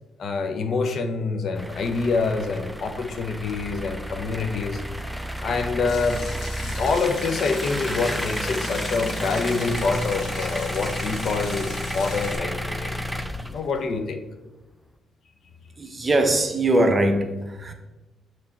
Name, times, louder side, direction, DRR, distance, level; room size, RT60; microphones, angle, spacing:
voice 1, 0.2-4.8 5.4-6.2 6.6-12.9 13.5-14.2, left 4 dB, 60° left, 7 dB, 0.6 m, -26 dB
sound 1, 1.6-13.9, equal, ahead, 0.4 m, -31 dB
Water tap faucet / Sink (filling or washing), 5.9-12.3, left 3 dB, 75° left, 1.5 m, -40 dB
voice 2, 15.8-17.7, right 1 dB, 25° right, 5 dB, 0.8 m, -21 dB
6.7 x 3.3 x 4.2 m, 1.1 s
cardioid pair, 90°, 0 cm